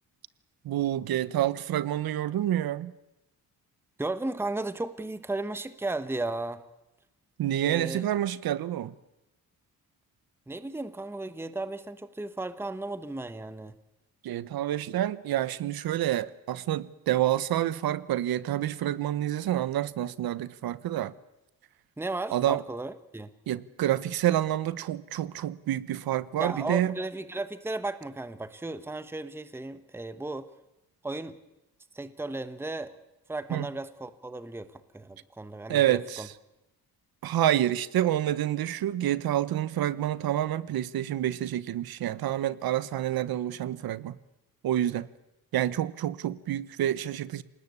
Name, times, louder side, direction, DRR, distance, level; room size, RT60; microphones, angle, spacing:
voice 1, 0.6-2.9 7.4-8.9 14.2-21.1 22.3-22.6 23.5-26.9 33.5-33.7 35.7-36.3 37.2-44.2 44.6-45.1 45.5-47.4, right 12 dB, 85° right, 1.1 m, -28 dB
voice 2, 4.0-6.6 7.7-8.0 10.5-13.7 22.0-23.3 26.4-30.5 31.0-31.4 31.9-32.9 33.3-34.7 34.9-36.3, right 2 dB, 5° right, 1.1 m, -35 dB
27.5 x 19.0 x 8.4 m
cardioid pair, 135°, 36 cm